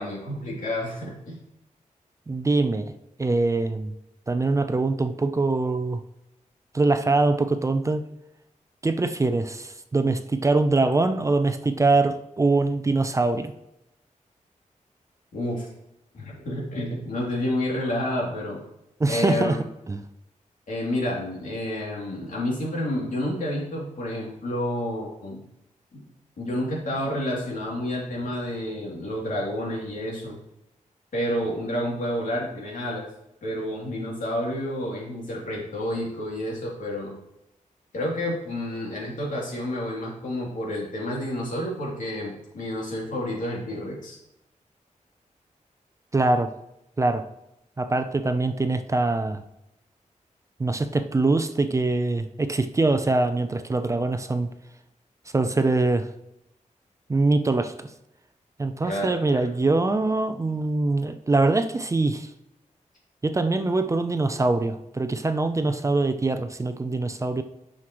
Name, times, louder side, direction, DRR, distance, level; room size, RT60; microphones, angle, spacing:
voice 1, 0.0-1.4 15.3-15.7 16.1-18.6 19.1-19.6 20.7-25.4 25.9-26.0 26.4-30.4 31.1-33.0 33.4-37.2 37.9-44.2 58.8-59.4, left 1 dB, 80° left, -3 dB, 2.7 m, -29 dB
voice 2, 2.3-2.9 3.2-3.9 4.3-6.0 6.7-8.1 8.8-13.5 19.0-19.6 19.9-20.0 46.1-46.5 47.0-47.3 47.8-49.4 50.6-54.5 55.3-56.1 57.1-57.9 58.6-62.3 63.2-67.4, right 3 dB, 25° right, 9 dB, 0.5 m, -23 dB
9.4 x 6.4 x 3.0 m, 0.86 s
wide cardioid pair, 165°, 13 cm